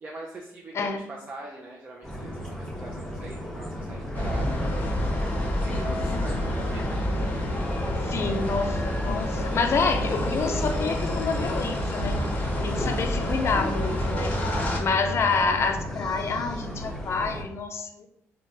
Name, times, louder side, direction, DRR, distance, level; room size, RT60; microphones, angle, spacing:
voice 1, 0.0-7.1 8.3-8.7 14.4-14.9, right 2 dB, 30° right, -2 dB, 0.4 m, -42 dB
sound 1, 2.0-17.4, equal, ahead, 0.9 m, -35 dB
sound 2, 4.1-14.8, left 1 dB, 30° left, 0.7 m, -28 dB
voice 2, 8.0-14.4 14.8-18.1, left 4 dB, 45° left, 5 dB, 0.4 m, -28 dB
3.0 x 2.2 x 2.7 m, 0.78 s
cardioid pair, 90°, 6 cm